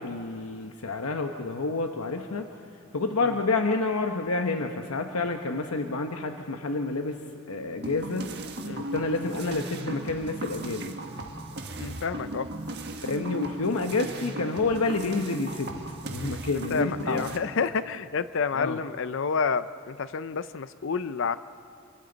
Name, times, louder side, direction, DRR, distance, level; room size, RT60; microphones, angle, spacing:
voice 1, 0.0-2.5 2.9-7.2 7.5-8.3 8.8-11.0 13.0-15.7 16.1-17.2 18.5-18.8, left 3 dB, 85° left, 4 dB, 1.0 m, -29 dB
sound 1, 7.8-17.4, right 2 dB, 50° right, 1.5 m, -37 dB
voice 2, 11.8-12.5 16.5-21.4, left 5 dB, 60° left, 13 dB, 0.5 m, -29 dB
29.0 x 23.5 x 4.0 m, 2.7 s
head